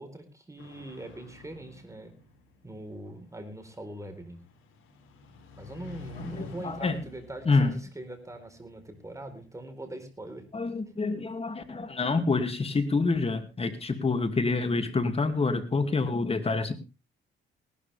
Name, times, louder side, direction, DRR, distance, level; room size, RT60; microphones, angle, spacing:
voice 1, 0.0-2.2 2.6-4.4 5.6-10.5, right 1 dB, 15° right, 7 dB, 4.1 m, -42 dB
sound 1, 0.6-11.5, left 3 dB, 85° left, 5.1 m, -51 dB
voice 2, 6.2-7.0 7.5-7.8 10.5-16.7, left 3 dB, 30° left, 8 dB, 2.4 m, -27 dB
19.0 x 12.5 x 3.4 m, 0.29 s
cardioid pair, 90°, 20 cm